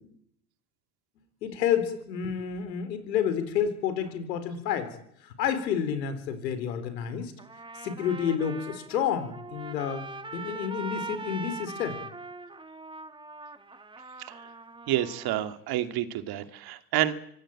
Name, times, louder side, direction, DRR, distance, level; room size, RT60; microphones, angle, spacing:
voice 1, 1.4-4.9 5.2-7.3 7.8-12.0, left 8 dB, 80° left, 11 dB, 4.3 m, -30 dB
Trumpet, 7.4-15.4, right 3 dB, 10° right, 1.7 m, -41 dB
voice 2, 14.9-17.3, right 13 dB, 50° right, 9 dB, 2.6 m, -29 dB
25.5 x 17.0 x 8.9 m, 0.71 s
hypercardioid pair, 95°, 49 cm